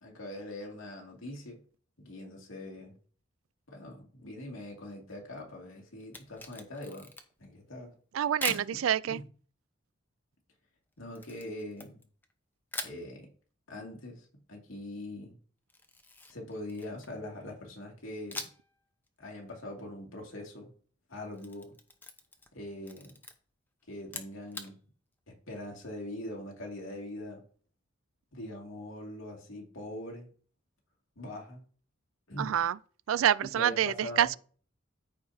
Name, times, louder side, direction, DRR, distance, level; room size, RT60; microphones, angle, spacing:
voice 1, 0.0-1.6 2.0-3.0 3.7-7.1 7.4-7.9 8.5-9.3 11.0-12.0 12.8-13.3 13.7-15.4 16.3-18.5 19.2-20.7 21.1-21.7 22.5-23.2 23.9-24.8 25.3-27.4 28.3-30.3 31.2-31.6 32.3-32.6 33.4-34.3, left 1 dB, 90° left, 2.5 m, -42 dB
Camera, 6.0-7.5 8.4-8.7 11.1-12.3 12.7-13.0 15.7-17.2 18.3-18.7 19.1-19.2 21.2-22.6 22.8-23.3 24.0-24.7, left 2 dB, 10° left, 0.8 m, -42 dB
voice 2, 8.1-9.2 32.4-32.8 33.1-34.4, right 10 dB, 85° right, 0.3 m, -27 dB
13.5 x 4.8 x 2.8 m
head